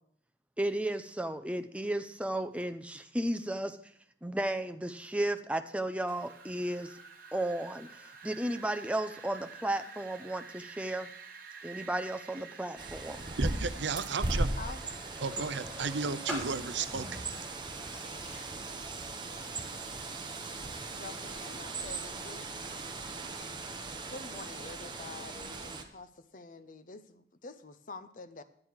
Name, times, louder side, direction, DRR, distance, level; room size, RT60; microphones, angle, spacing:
voice 1, 0.6-3.8 4.2-7.0 7.3-11.1 11.6-13.3, right 1 dB, 5° right, 0.5 m, -34 dB
Wind, 6.1-18.0, right 5 dB, 50° right, 1.1 m, -50 dB
Bird, 12.8-25.8, right 2 dB, 25° right, 0.8 m, -38 dB
voice 2, 13.4-14.5 15.2-17.1, right 5 dB, 80° right, 0.6 m, -34 dB
sound 1, 15.2-21.4, equal, 10° left, 2.8 m, -47 dB
voice 3, 20.9-22.5 24.1-28.4, left 3 dB, 45° left, 0.6 m, -47 dB
11.0 x 8.7 x 4.7 m
head